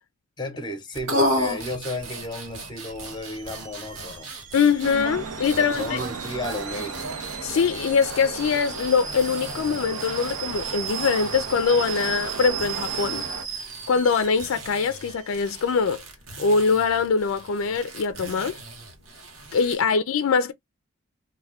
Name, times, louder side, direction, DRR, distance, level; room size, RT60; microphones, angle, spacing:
voice 1, 0.4-4.4 5.5-7.2, left 1 dB, 20° left, 0.6 m, -33 dB
Alarm / Boiling, 0.9-15.7, right 7 dB, 35° right, 0.5 m, -38 dB
sound 1, 0.9-19.8, equal, 65° right, 1.0 m, -35 dB
voice 2, 4.5-6.0 7.4-13.2 13.9-16.0 16.4-18.6 19.5-20.5, left 5 dB, 70° left, 0.4 m, -23 dB
sound 2, 4.8-13.4, right 4 dB, 85° right, 0.6 m, -35 dB
2.2 x 2.2 x 3.4 m
head